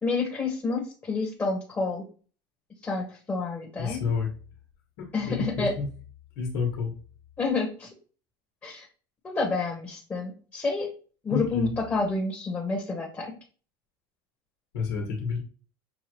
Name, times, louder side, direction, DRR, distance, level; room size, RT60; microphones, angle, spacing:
voice 1, 0.0-2.0 2.8-4.1 5.1-5.7 7.4-7.9 8.6-8.9 9.2-10.9 11.2-13.3, left 3 dB, 20° left, 0 dB, 1.3 m, -29 dB
voice 2, 3.8-4.3 5.0-5.9 6.4-6.9 11.3-11.7 14.7-15.4, left 5 dB, 80° left, 0 dB, 1.5 m, -29 dB
6.7 x 2.5 x 3.1 m, 0.39 s
supercardioid pair, 120°, 12 cm